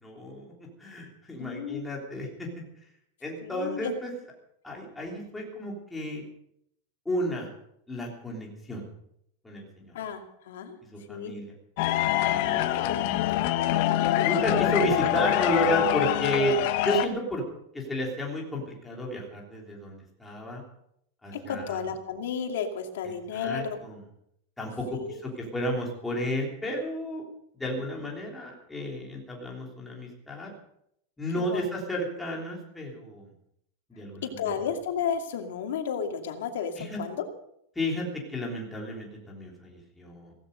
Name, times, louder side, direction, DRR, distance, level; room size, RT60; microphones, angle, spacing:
voice 1, 0.0-2.6 3.2-4.1 4.6-6.2 7.1-7.5 7.9-8.8 9.4-9.9 10.9-11.5 12.2-12.7 14.2-17.4 17.7-20.6 21.2-21.8 23.3-24.0 24.6-27.2 27.6-30.5 31.2-33.3 33.9-34.6 36.8-37.0 37.8-40.3, equal, 5° left, -2 dB, 3.4 m, -32 dB
voice 2, 1.4-1.8 3.4-3.9 9.9-10.8 11.1-11.3 12.7-13.4 21.3-23.8 24.9-25.2 31.3-31.7 34.2-37.3, left 7 dB, 75° left, 5 dB, 2.7 m, -33 dB
sound 1, 11.8-17.1, left 13 dB, 40° left, 1.0 m, -25 dB
17.0 x 15.5 x 5.3 m, 0.74 s
supercardioid pair, 180°, 0 cm